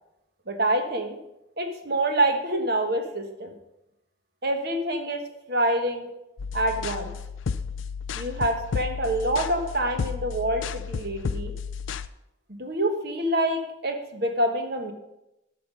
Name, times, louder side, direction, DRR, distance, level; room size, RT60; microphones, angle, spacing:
voice 1, 0.5-1.2 1.6-3.5 4.4-5.2 5.5-6.1 6.5-7.1 8.1-11.5 12.5-14.9, right 1 dB, 50° right, 5 dB, 1.4 m, -26 dB
sound 1, 6.4-12.1, left 5 dB, 75° left, 0.4 m, -32 dB
12.0 x 6.8 x 5.4 m, 0.89 s
head